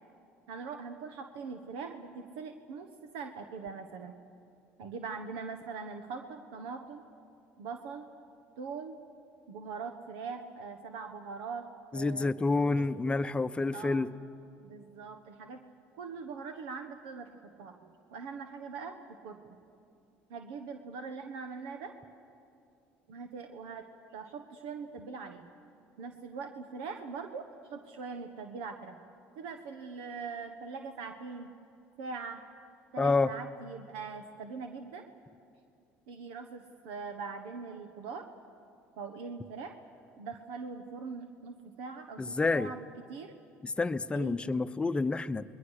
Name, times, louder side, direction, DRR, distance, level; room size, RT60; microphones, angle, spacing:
voice 1, 0.5-2.9 3.1-4.1 4.8-7.0 7.6-8.1 8.6-9.0 9.5-11.7 11.9-13.2 13.7-14.1 14.6-15.6 15.9-18.9 19.2-19.4 20.3-21.9 23.1-25.5 26.0-27.4 27.7-29.0 29.3-31.5 32.0-32.4 32.9-35.1 36.1-38.2 39.0-39.7 40.2-43.3 44.1-44.4, right 5 dB, 85° right, 6 dB, 1.3 m, -42 dB
voice 2, 11.9-14.1 33.0-33.3 42.2-42.7 43.6-45.4, left 3 dB, 20° left, 13 dB, 0.8 m, -28 dB
28.0 x 21.5 x 6.6 m, 2.6 s
supercardioid pair, 90°, 5 cm